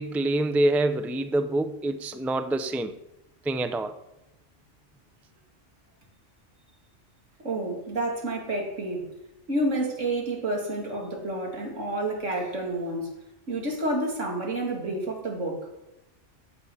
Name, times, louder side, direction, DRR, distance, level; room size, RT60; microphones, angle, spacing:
voice 1, 0.0-2.9 3.4-4.0, right 2 dB, ahead, 0.4 m, -26 dB
voice 2, 7.4-9.0 9.5-13.1 13.5-15.7, right 1 dB, 80° right, 3.1 m, -29 dB
15.5 x 8.5 x 5.5 m
omnidirectional pair, 1.2 m